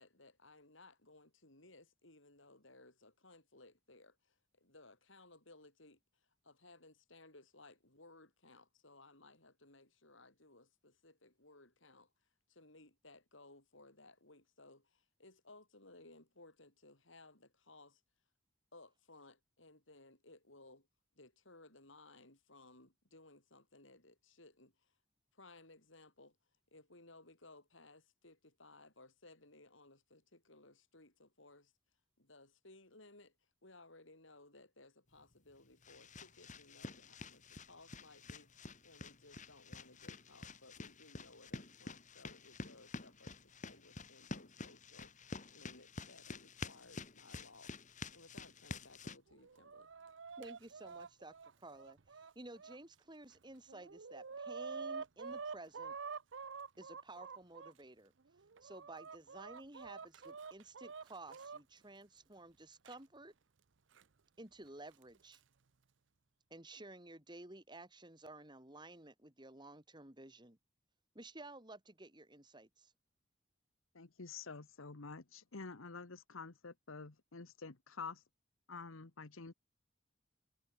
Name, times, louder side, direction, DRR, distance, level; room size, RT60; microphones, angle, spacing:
voice 1, 0.0-6.0 6.4-12.1 12.5-18.0 18.7-20.9 21.2-24.9 25.3-26.4 26.7-31.7 32.2-33.3 33.6-49.9, left 2 dB, 70° left, 7.5 m, -61 dB
sound 1, 35.2-49.2, left 3 dB, 40° left, 2.2 m, -49 dB
Chicken rooster, 49.3-52.8 53.3-53.4 53.7-57.7 58.3-61.6 62.9-63.0 64.0-64.1 65.0-65.4, right 5 dB, 65° right, 0.7 m, -48 dB
voice 2, 50.4-56.0 56.8-58.1 58.6-63.3 64.4-65.4 66.5-70.6 71.2-72.9, right 2 dB, 20° right, 3.6 m, -53 dB
voice 3, 73.9-78.2 78.7-79.5, left 4 dB, 90° left, 1.3 m, -49 dB
head